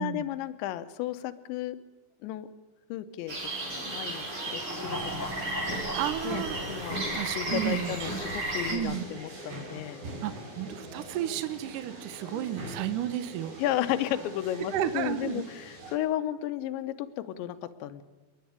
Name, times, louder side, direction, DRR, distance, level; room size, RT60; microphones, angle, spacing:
voice 1, 0.0-1.8 2.2-2.5 2.9-5.0 5.4-5.5 6.2-6.4 6.7-10.0 13.6-18.0, left 13 dB, 80° left, 11 dB, 3.2 m, -33 dB
sound 1, 3.3-8.8, right 1 dB, 30° right, 5.2 m, -35 dB
sound 2, 3.7-15.9, right 1 dB, 55° right, 7.3 m, -41 dB
sound 3, 4.6-8.0 8.3-8.4, equal, 5° left, 2.2 m, -40 dB
voice 2, 5.9-6.9 7.1-8.0 8.7-9.0 10.2-13.6 14.7-15.4, right 11 dB, 80° right, 12 dB, 1.8 m, -32 dB
29.5 x 10.5 x 9.6 m, 1.1 s
omnidirectional pair, 5.2 m